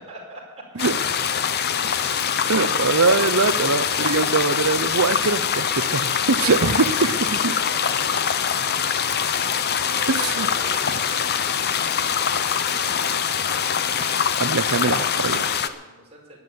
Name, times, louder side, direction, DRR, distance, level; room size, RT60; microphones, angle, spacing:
voice 1, 0.0-0.8 1.1-1.5 2.2-3.1 6.3-8.3 9.1-14.2 14.6-16.4, right 2 dB, 30° right, -3 dB, 5.1 m, -43 dB
sound 1, 0.8-15.7, left 7 dB, 50° left, 0.8 m, -23 dB
voice 2, 2.5-7.1 7.4-7.5 10.1-10.5 14.4-15.4, right 4 dB, 70° right, 12 dB, 0.8 m, -22 dB
12.0 x 9.7 x 9.8 m, 1.2 s
head